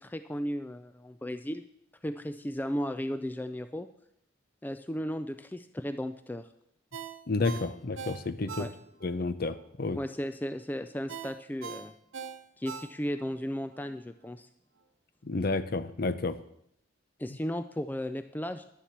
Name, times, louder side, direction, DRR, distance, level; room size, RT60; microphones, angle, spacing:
voice 1, 0.0-1.6 2.0-3.9 4.6-6.5 8.4-8.7 9.9-11.9 12.6-14.5 17.2-18.6, equal, 10° left, 9 dB, 0.3 m, -35 dB
Ringtone, 6.9-9.2 9.6-9.7 11.1-13.3 13.7-13.8, right 6 dB, 80° right, 0.9 m, -42 dB
voice 2, 7.3-8.6 9.0-10.0 15.3-16.4, left 3 dB, 50° left, 12 dB, 0.6 m, -30 dB
11.0 x 7.1 x 7.3 m, 0.77 s
head